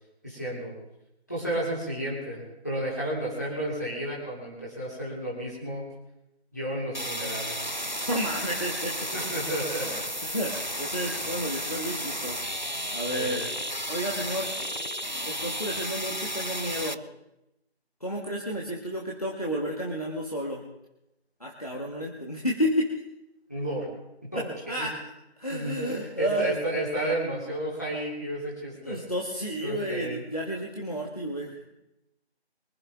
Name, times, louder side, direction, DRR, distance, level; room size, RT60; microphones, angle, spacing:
voice 1, 0.2-0.7 1.3-5.8 6.5-7.7 9.1-10.0 11.2-11.4 13.1-13.4 23.5-23.9 24.2-24.9 25.5-29.0 29.6-30.2, right 1 dB, 15° left, -7 dB, 3.1 m, -32 dB
sound 1, 6.9-16.9, equal, 45° right, 0.5 m, -33 dB
voice 2, 8.0-9.0 9.8-9.9 10.2-12.4 12.9-13.5 13.9-14.5 15.2-17.0 18.0-20.6 21.4-23.0 24.3-25.1 25.4-26.5 28.8-31.6, equal, 35° left, -2 dB, 1.6 m, -31 dB
24.5 x 11.5 x 3.7 m, 0.88 s
figure-of-eight pair, 175°, 32 cm